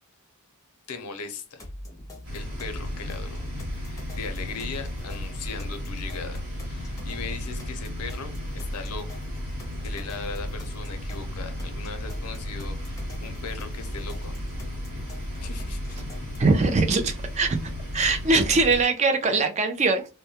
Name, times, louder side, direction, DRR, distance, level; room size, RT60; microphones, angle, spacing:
voice 1, 0.9-1.7 2.3-3.4 3.8-9.2 9.8-14.4 15.4-16.0, left 4 dB, 90° left, 8 dB, 0.6 m, -39 dB
sound 1, 1.6-16.6, left 1 dB, 15° left, 0.6 m, -42 dB
sound 2, 2.2-18.8, left 1 dB, 80° right, 1.3 m, -34 dB
voice 2, 16.4-17.6 17.9-20.1, right 3 dB, 30° right, 7 dB, 0.4 m, -22 dB
2.2 x 2.1 x 2.7 m, 0.32 s
head